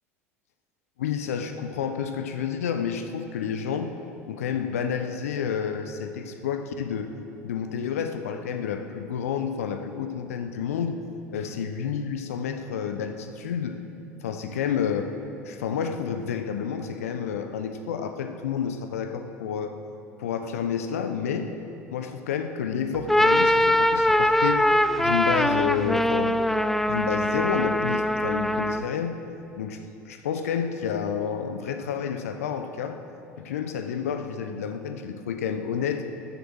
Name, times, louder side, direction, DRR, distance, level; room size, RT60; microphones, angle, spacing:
voice 1, 1.0-3.9 4.3-7.1 7.4-11.0 11.3-13.8 14.2-15.1 15.4-19.7 20.2-21.6 21.9-24.7 25.0-26.5 26.9-29.2 29.6-33.0 33.4-36.0, left 7 dB, 70° left, 7 dB, 1.1 m, -30 dB
sound 1, 22.9-29.0, left 1 dB, 5° left, 0.5 m, -22 dB
14.0 x 10.0 x 6.4 m, 2.7 s
figure-of-eight pair, 75°, 8 cm